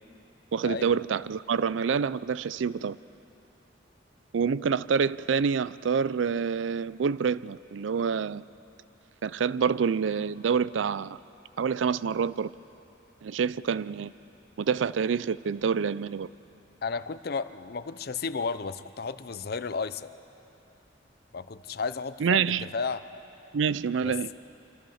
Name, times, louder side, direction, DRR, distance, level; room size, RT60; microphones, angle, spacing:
voice 1, 0.5-3.0 4.3-8.4 9.2-11.2 11.6-12.5 13.2-14.1 14.6-16.3 22.2-22.7 23.5-24.3, right 6 dB, 85° right, 18 dB, 0.4 m, -27 dB
voice 2, 16.8-20.1 21.3-23.0 24.0-24.1, left 5 dB, 55° left, 13 dB, 0.6 m, -33 dB
26.5 x 14.0 x 7.2 m, 2.9 s
head